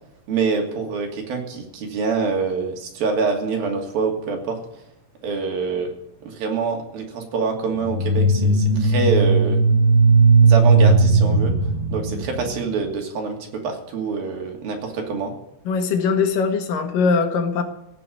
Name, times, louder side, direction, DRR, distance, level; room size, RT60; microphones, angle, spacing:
voice 1, 0.3-4.6 5.2-5.9 6.2-9.6 10.4-11.5 11.9-15.3, right 5 dB, 85° right, 2 dB, 4.5 m, -25 dB
sound 1, 7.8-12.7, right 3 dB, 10° right, 3.0 m, -16 dB
voice 2, 15.7-17.6, left 5 dB, 75° left, 6 dB, 3.2 m, -21 dB
16.5 x 7.0 x 9.3 m, 0.83 s
omnidirectional pair, 4.0 m